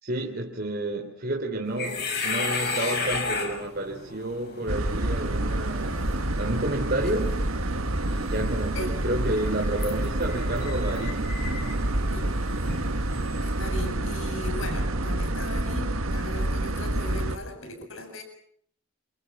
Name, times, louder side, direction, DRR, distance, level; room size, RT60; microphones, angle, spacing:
voice 1, 0.0-7.5 8.0-11.8, right 1 dB, 45° right, 3.3 m, -31 dB
sound 1, 1.7-13.9, left 3 dB, 50° left, 6.4 m, -35 dB
sound 2, 4.7-17.4, right 1 dB, 90° right, 1.7 m, -28 dB
voice 2, 13.4-18.2, left 1 dB, 70° left, 7.4 m, -38 dB
29.0 x 28.0 x 6.1 m
head